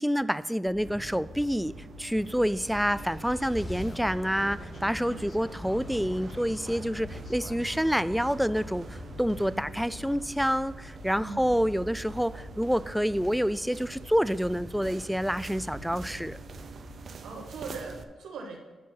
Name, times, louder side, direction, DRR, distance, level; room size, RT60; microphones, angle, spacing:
voice 1, 0.0-1.7 2.0-16.4, equal, ahead, 16 dB, 0.3 m, -28 dB
sound 1, 0.7-17.2, left 5 dB, 50° left, 0.5 m, -48 dB
sound 2, 0.8-18.0, right 5 dB, 60° right, 0.6 m, -45 dB
sound 3, 2.2-11.2, left 1 dB, 20° left, 2.8 m, -44 dB
voice 2, 5.0-5.4 9.5-9.8 11.2-11.5 17.2-18.6, right 4 dB, 90° right, 1 dB, 1.4 m, -41 dB
9.6 x 4.6 x 5.7 m, 1.3 s
cardioid pair, 60°, 0 cm